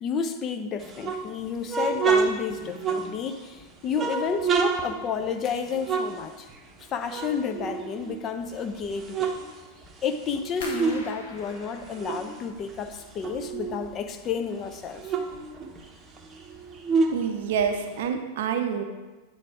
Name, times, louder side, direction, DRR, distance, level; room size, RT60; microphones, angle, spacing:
voice 1, 0.0-6.5 6.9-9.4 10.0-15.1, left 6 dB, 30° left, 7 dB, 0.6 m, -31 dB
sound 1, 0.8-3.5 3.9-6.8 7.1-8.4 8.8-11.1 11.4-13.9 14.3-14.4 14.6-18.1, right 5 dB, 20° right, 0.8 m, -29 dB
sound 2, 10.6-13.5 13.8-14.5 14.8-15.2 15.7-15.8, left 3 dB, 60° left, 0.9 m, -44 dB
voice 2, 17.1-18.8, right 7 dB, 55° right, 6 dB, 0.6 m, -27 dB
8.5 x 3.8 x 4.7 m, 1.2 s
figure-of-eight pair, 90°, 0 cm